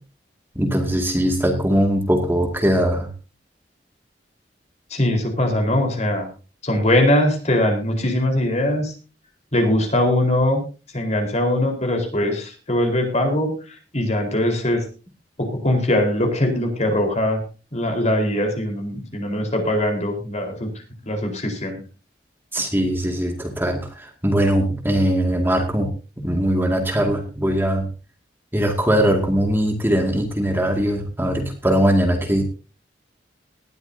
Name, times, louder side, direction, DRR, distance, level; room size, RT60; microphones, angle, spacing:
voice 1, 0.6-3.1 22.5-25.9 26.2-27.9 28.5-32.4, equal, 15° right, 2 dB, 2.2 m, -20 dB
voice 2, 4.9-6.3 6.6-8.9 9.5-10.6 10.9-14.8 15.4-17.4 17.7-20.7 21.0-21.8, left 1 dB, 40° left, 3 dB, 4.4 m, -21 dB
19.0 x 12.5 x 2.8 m, 0.34 s
head